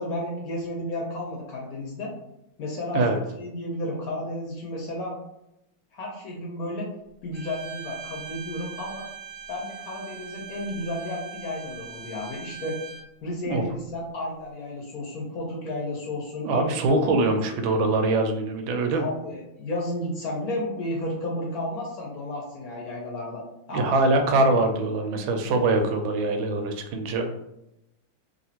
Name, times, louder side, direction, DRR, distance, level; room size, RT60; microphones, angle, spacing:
voice 1, 0.0-2.1 2.6-5.1 5.9-6.9 7.2-9.1 9.5-12.8 13.2-17.4 19.0-23.4 23.7-24.3, left 1 dB, 65° left, -2 dB, 1.0 m, -32 dB
Bowed string instrument, 7.3-13.1, right 6 dB, 60° right, 1.1 m, -41 dB
voice 2, 16.4-19.0 23.7-27.5, right 2 dB, 85° right, 6 dB, 1.4 m, -23 dB
3.1 x 2.7 x 2.8 m, 0.86 s
omnidirectional pair, 2.1 m